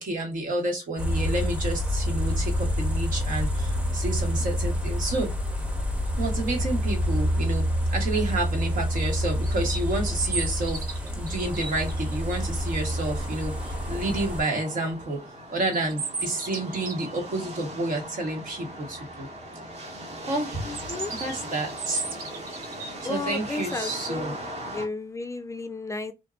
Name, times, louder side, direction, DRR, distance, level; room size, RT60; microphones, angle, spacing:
voice 1, 0.0-5.3 6.2-7.6 7.9-10.8 11.2-15.2 15.5-19.3 20.3-20.8 21.2-22.0 22.6-24.3, right 2 dB, 70° right, 1.2 m, -30 dB
sound 1, 1.0-14.4, equal, 10° right, 0.7 m, -27 dB
sound 2, 9.4-12.2 15.6-17.2 20.7-23.2, right 3 dB, 85° right, 0.7 m, -34 dB
sound 3, 11.4-24.9, right 1 dB, 50° right, 1.0 m, -39 dB
voice 2, 20.6-21.1 23.0-24.4 24.7-26.1, left 3 dB, 20° left, 0.3 m, -33 dB
2.7 x 2.2 x 2.3 m
cardioid pair, 90°, 14 cm